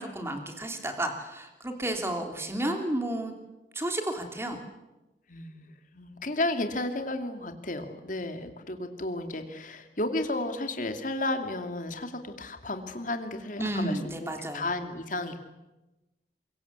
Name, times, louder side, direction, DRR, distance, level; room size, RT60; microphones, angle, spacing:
voice 1, 0.0-3.3 3.7-4.6 13.6-14.6, right 1 dB, 15° right, 4 dB, 3.1 m, -32 dB
voice 2, 5.3-15.4, left 2 dB, 45° left, 6 dB, 2.6 m, -33 dB
24.5 x 22.5 x 8.3 m, 1.0 s
head